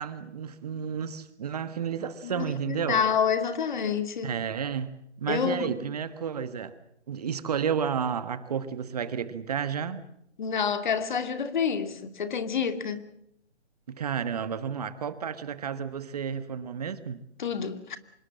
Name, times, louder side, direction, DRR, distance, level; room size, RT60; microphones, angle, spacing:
voice 1, 0.0-3.0 4.2-6.8 7.1-10.0 13.9-17.2, right 7 dB, 35° right, 1.4 m, -31 dB
voice 2, 2.2-4.3 5.3-5.8 10.4-13.1 17.4-18.0, left 6 dB, 45° left, 2.4 m, -28 dB
26.0 x 20.5 x 7.5 m
figure-of-eight pair, 150°, 34 cm